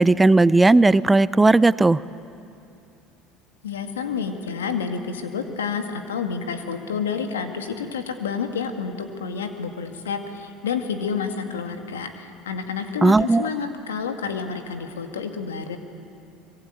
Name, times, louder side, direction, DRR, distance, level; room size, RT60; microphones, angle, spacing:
voice 1, 0.0-2.0 13.0-13.5, right 2 dB, 15° right, 18 dB, 0.5 m, -16 dB
voice 2, 3.6-15.8, left 6 dB, 90° left, 6 dB, 2.0 m, -29 dB
24.5 x 22.0 x 9.1 m, 2.7 s
hypercardioid pair, 75°, 0 cm